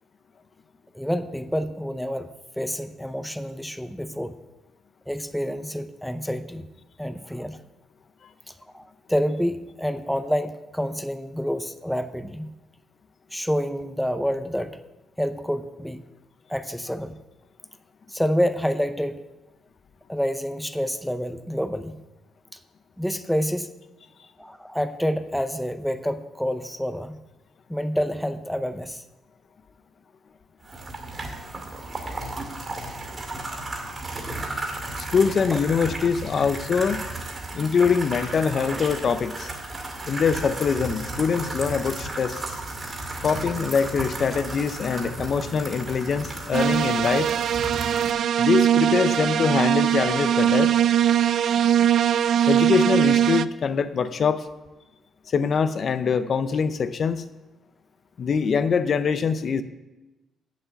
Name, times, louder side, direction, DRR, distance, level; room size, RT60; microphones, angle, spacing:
voice 1, 0.9-2.3 2.6-4.4 5.1-6.6 7.0-7.6 8.5-12.5 13.3-14.8 15.2-16.0 16.5-17.2 18.1-19.2 20.1-22.0 23.0-23.7 24.4-27.2 27.7-29.0 35.5-35.6, equal, ahead, 10 dB, 0.7 m, -28 dB
sound 1, 30.6-48.1, right 2 dB, 30° right, 2.3 m, -34 dB
voice 2, 35.0-37.0 37.5-39.5 40.1-42.4 43.2-47.3 48.4-50.7 52.5-54.5 55.3-57.2 58.2-59.6, left 6 dB, 50° left, 11 dB, 0.6 m, -23 dB
sound 2, 46.5-53.4, right 10 dB, 65° right, 0.3 m, -21 dB
8.1 x 7.4 x 7.0 m, 1.1 s
cardioid pair, 90°, 0 cm